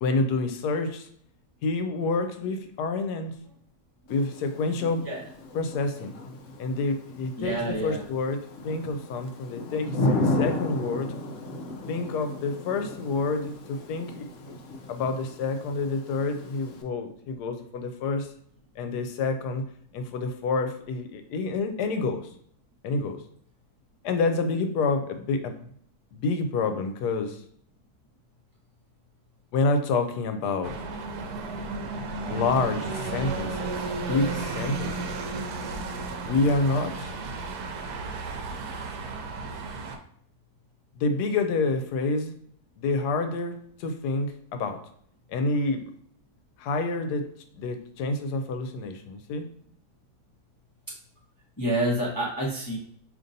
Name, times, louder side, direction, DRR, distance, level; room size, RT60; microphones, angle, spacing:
voice 1, 0.0-1.1 1.6-3.3 4.1-5.0 5.5-6.1 6.6-11.1 11.9-14.3 14.9-18.3 18.8-19.7 19.9-22.3 22.8-23.2 24.0-25.7 26.1-27.4 29.5-30.8 32.3-35.1 36.2-37.1 40.9-42.3 42.8-44.8 45.3-45.8 46.6-47.3 47.6-49.4, left 3 dB, 85° left, 7 dB, 1.2 m, -28 dB
Thunder / Rain, 4.1-16.8, left 1 dB, 65° left, 0.8 m, -34 dB
voice 2, 7.4-8.0 51.6-52.8, right 1 dB, 25° left, -5 dB, 0.5 m, -28 dB
sound 1, 30.6-40.0, right 3 dB, 80° right, 1.1 m, -33 dB
5.2 x 2.9 x 2.6 m, 0.64 s
omnidirectional pair, 1.7 m